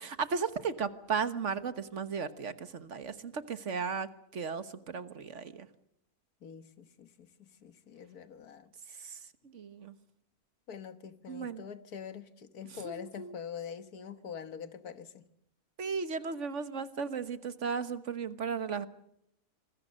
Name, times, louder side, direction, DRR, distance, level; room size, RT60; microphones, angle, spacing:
voice 1, 0.0-5.7 9.0-9.2 9.5-9.9 11.3-11.6 12.8-13.4 15.8-18.9, right 5 dB, 55° right, 1.5 m, -35 dB
voice 2, 6.4-9.1 10.7-15.2, left 7 dB, 80° left, 1.8 m, -45 dB
26.0 x 21.0 x 6.4 m
omnidirectional pair, 1.6 m